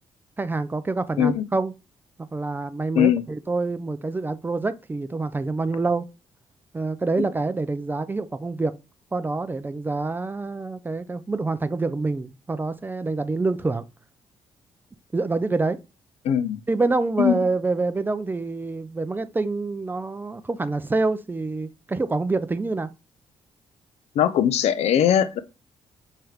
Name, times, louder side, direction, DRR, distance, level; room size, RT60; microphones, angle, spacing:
voice 1, 0.4-1.7 2.3-6.1 6.7-8.7 9.1-13.8 15.1-15.8 16.7-22.9, right 3 dB, 20° right, 0.4 m, -26 dB
voice 2, 16.2-16.6 17.2-17.3 24.2-25.4, left 9 dB, 75° left, 0.4 m, -20 dB
4.5 x 3.3 x 2.3 m
cardioid pair, 80°, 11 cm